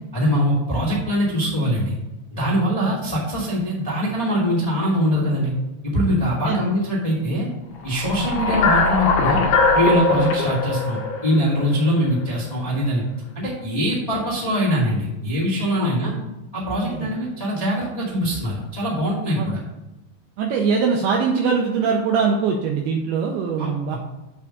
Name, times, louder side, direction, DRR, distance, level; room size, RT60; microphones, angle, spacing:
voice 1, 0.1-2.0 2.3-5.5 5.8-7.5 7.8-9.4 9.7-13.0 13.3-16.1 16.5-19.6 23.6-24.0, equal, 20° left, -7 dB, 1.0 m, -22 dB
sound 1, 7.9-12.2, left 3 dB, 70° left, 2.6 m, -21 dB
voice 2, 20.4-24.0, right 5 dB, 90° right, 1 dB, 2.3 m, -22 dB
8.4 x 3.5 x 6.6 m, 1.0 s
omnidirectional pair, 5.3 m